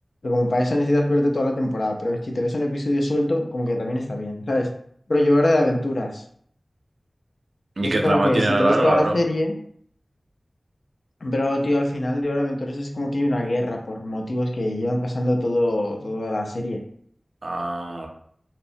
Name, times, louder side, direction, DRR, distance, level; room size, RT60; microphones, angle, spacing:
voice 1, 0.2-4.7 5.1-6.2 7.8-9.5 11.2-16.8, left 1 dB, 85° left, 2 dB, 0.4 m, -23 dB
voice 2, 7.8-9.2 17.4-18.1, right 2 dB, 85° right, 2 dB, 0.4 m, -22 dB
2.8 x 2.0 x 2.6 m, 0.65 s
wide cardioid pair, 65°, 0 cm